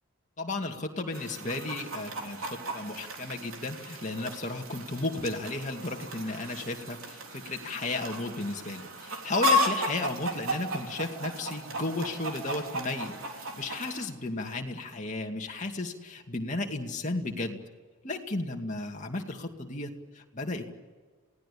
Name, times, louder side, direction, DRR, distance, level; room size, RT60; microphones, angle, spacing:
voice 1, 0.4-13.1 13.4-17.6 18.0-20.7, left 2 dB, 35° left, 2 dB, 2.4 m, -34 dB
Chicken rooster, 1.1-14.1, left 1 dB, 75° right, 3.6 m, -34 dB
28.0 x 18.0 x 8.7 m, 1.5 s
head